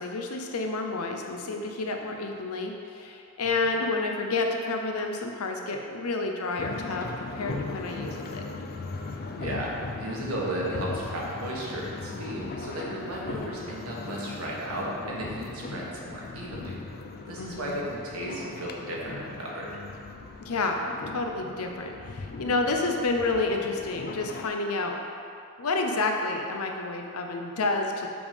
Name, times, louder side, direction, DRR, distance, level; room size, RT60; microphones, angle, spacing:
voice 1, 0.0-8.5 17.4-17.8 20.4-25.0 25.6-28.1, left 3 dB, 85° left, 3 dB, 0.7 m, -30 dB
sound 1, 6.6-24.5, left 3 dB, 45° left, 0.4 m, -38 dB
voice 2, 9.4-16.8 17.3-19.7, right 1 dB, 80° right, -4 dB, 1.4 m, -34 dB
6.9 x 3.6 x 5.1 m, 2.5 s
head